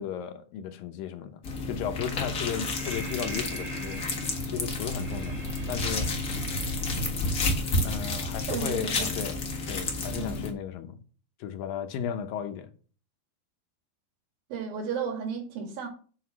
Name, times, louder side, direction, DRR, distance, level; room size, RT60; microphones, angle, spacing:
voice 1, 0.0-4.1 4.5-5.4 5.7-6.1 7.8-9.4 9.7-11.0 11.4-12.7, left 8 dB, 75° left, 2.5 m, -35 dB
sound 1, 1.4-10.5, left 2 dB, 50° left, 1.0 m, -31 dB
Breathing, 2.3-8.2, right 1 dB, 35° right, 1.1 m, -39 dB
voice 2, 8.5-9.1 10.2-10.5 14.5-15.9, right 6 dB, 75° right, 3.5 m, -33 dB
7.8 x 5.7 x 6.2 m
omnidirectional pair, 4.2 m